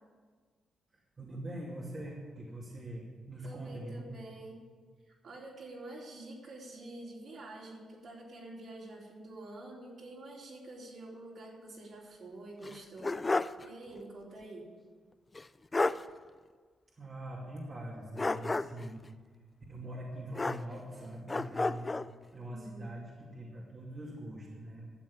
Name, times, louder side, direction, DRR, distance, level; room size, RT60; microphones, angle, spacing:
voice 1, 0.9-4.2 17.0-19.0 19.7-22.0 22.3-24.9, right 1 dB, 35° right, -4 dB, 2.6 m, -43 dB
voice 2, 3.4-4.6 5.1-13.2 13.6-14.7 22.5-22.9, right 2 dB, 60° right, -3 dB, 4.1 m, -47 dB
sound 1, 12.6-13.7 14.0-14.1 15.4-15.5 15.7-16.1 18.2-18.9 20.3-21.0 21.3-22.1, left 3 dB, 25° left, 0.4 m, -31 dB
12.0 x 7.5 x 8.7 m, 1.5 s
cardioid pair, 95°, 0 cm